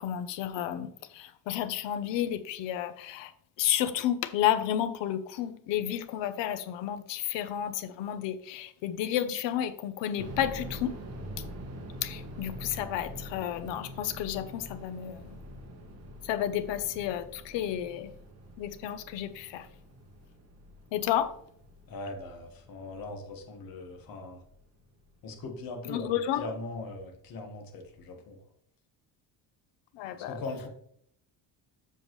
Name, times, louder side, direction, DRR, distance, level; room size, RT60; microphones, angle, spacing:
voice 1, 0.0-3.3 3.6-11.0 12.0-15.4 16.2-18.1 18.6-19.7 20.9-21.3 25.8-26.4 29.9-30.4, left 11 dB, 85° left, 11 dB, 0.9 m, -31 dB
sound 1, 10.2-25.0 25.3-25.4 26.0-26.3, equal, 35° right, 1.3 m, -45 dB
voice 2, 21.9-24.4 25.2-28.4 30.3-30.7, left 2 dB, 55° left, 3 dB, 1.7 m, -40 dB
7.8 x 6.8 x 3.2 m, 0.66 s
cardioid pair, 155°, 42 cm